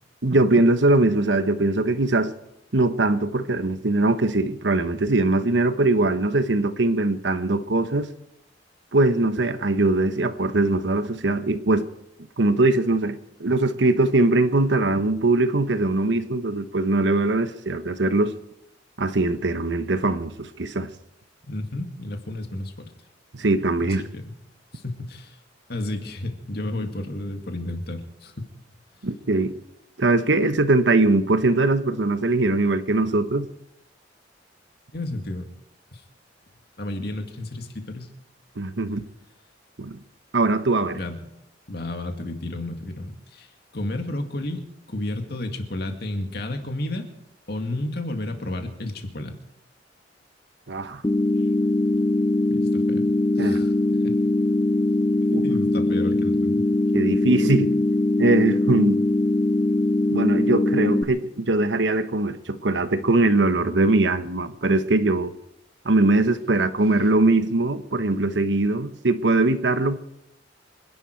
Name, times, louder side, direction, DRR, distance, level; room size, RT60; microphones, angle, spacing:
voice 1, 0.2-2.3 2.7-8.1 8.9-11.9 12.4-18.4 19.0-20.9 23.3-24.0 29.0-29.6 30.0-33.5 38.6-39.0 39.8-40.0 40.3-41.0 50.7-51.0 53.4-53.6 55.3-55.4 56.9-57.7 58.2-59.0 60.1-65.3 65.8-70.0, right 2 dB, 75° right, 1.1 m, -21 dB
voice 2, 21.5-22.9 23.8-24.3 24.7-25.4 25.7-28.5 34.9-35.5 35.9-36.0 36.8-38.1 40.9-41.2 41.7-44.6 44.9-47.0 47.5-49.4 52.5-53.0 53.4-54.2 55.3-56.6, left 1 dB, 60° left, 2.1 m, -32 dB
sound 1, 51.0-61.0, left 2 dB, 20° left, 0.6 m, -21 dB
26.5 x 11.0 x 4.6 m
head